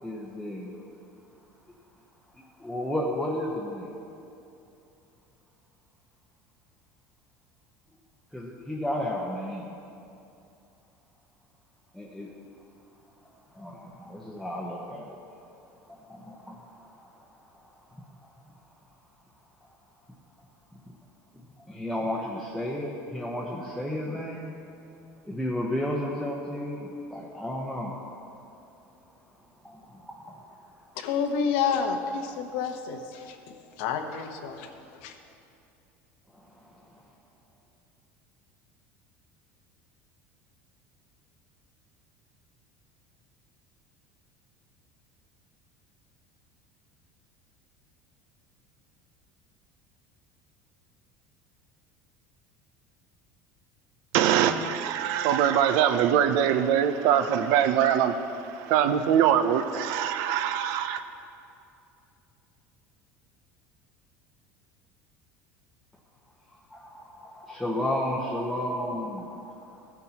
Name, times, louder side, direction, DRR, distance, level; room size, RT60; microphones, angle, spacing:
voice 1, 0.0-0.8 2.3-3.9 8.3-9.7 11.9-12.3 13.5-15.2 15.9-17.1 17.6-18.0 21.7-24.5 25.2-27.9 29.6-30.4 36.3-37.0 66.7-69.9, left 1 dB, ahead, 0.9 m, -33 dB
voice 2, 31.0-33.4 33.8-35.2, left 6 dB, 80° left, 1.0 m, -29 dB
voice 3, 54.1-61.0, right 9 dB, 70° right, 0.6 m, -23 dB
16.0 x 9.6 x 2.9 m
cardioid pair, 145°, 6 cm